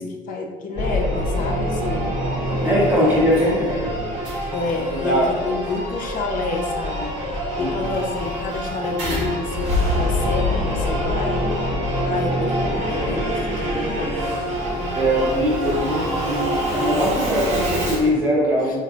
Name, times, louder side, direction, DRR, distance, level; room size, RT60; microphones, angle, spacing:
voice 1, 0.0-2.1 2.5-3.2 4.5-11.5 12.0-14.2 18.6-18.8, left 3 dB, 45° left, 1 dB, 0.5 m, -28 dB
Singing / Musical instrument, 0.8-18.1, equal, 35° right, 1.3 m, -25 dB
voice 2, 2.6-4.1 5.0-5.5 7.6-7.9 14.9-18.8, equal, 10° right, -8 dB, 0.9 m, -21 dB
sound 1, 2.6-10.1, right 1 dB, 90° right, 1.4 m, -38 dB
3.8 x 2.4 x 2.4 m, 1.5 s
supercardioid pair, 90°, 19 cm